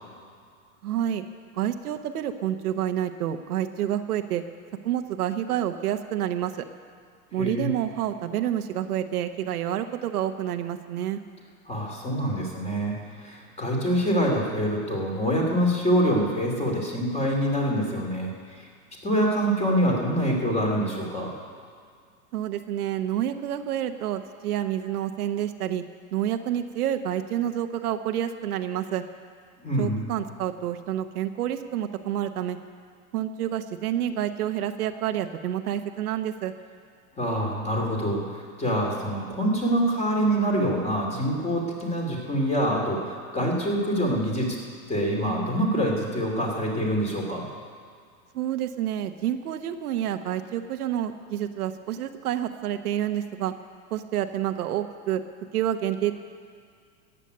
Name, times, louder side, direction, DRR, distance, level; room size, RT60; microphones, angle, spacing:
voice 1, 0.8-1.2 1.6-4.4 4.8-6.6 7.3-11.2 22.3-25.8 26.1-29.0 29.8-32.6 33.1-36.5 48.3-53.5 53.9-55.2 55.5-56.1, right 11 dB, 80° right, 8 dB, 1.1 m, -28 dB
voice 2, 7.3-7.7 11.7-18.3 18.6-18.7 19.0-21.3 29.6-30.1 37.2-44.6 44.9-47.5, equal, 15° left, -1 dB, 3.0 m, -25 dB
14.0 x 8.3 x 9.6 m, 2.1 s
supercardioid pair, 135°, 44 cm